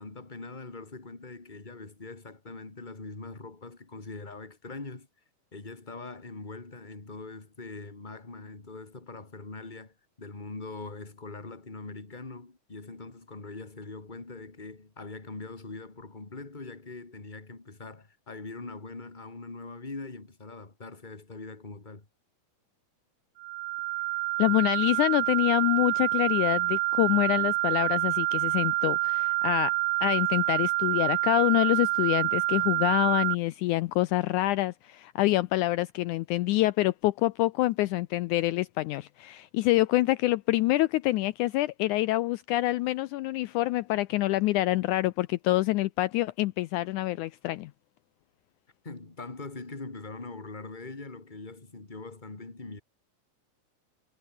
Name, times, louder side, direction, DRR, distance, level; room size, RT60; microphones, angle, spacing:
voice 1, 0.0-5.1 5.5-22.1 48.8-52.8, left 3 dB, 15° left, 2.7 m, -42 dB
sound 1, 23.4-33.3, right 18 dB, 75° right, 1.7 m, -27 dB
voice 2, 24.4-29.8 30.0-47.7, left 17 dB, 75° left, 2.0 m, -26 dB
omnidirectional pair, 3.7 m